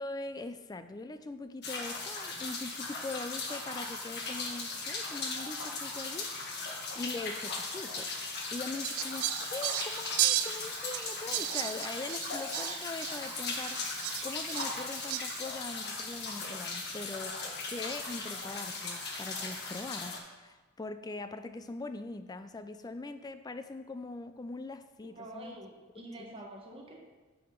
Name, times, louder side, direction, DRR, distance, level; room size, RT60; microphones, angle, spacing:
voice 1, 0.0-6.3 6.7-8.1 8.5-13.8 14.2-25.6 25.9-26.4, left 2 dB, 20° left, 10 dB, 0.4 m, -42 dB
sound 1, 1.6-20.2, left 3 dB, 50° left, 1.3 m, -38 dB
Fowl, 8.8-15.5, right 15 dB, 80° right, 0.3 m, -35 dB
voice 2, 25.0-27.0, right 1 dB, 25° right, -1 dB, 1.4 m, -47 dB
9.4 x 4.9 x 5.2 m, 1.2 s
head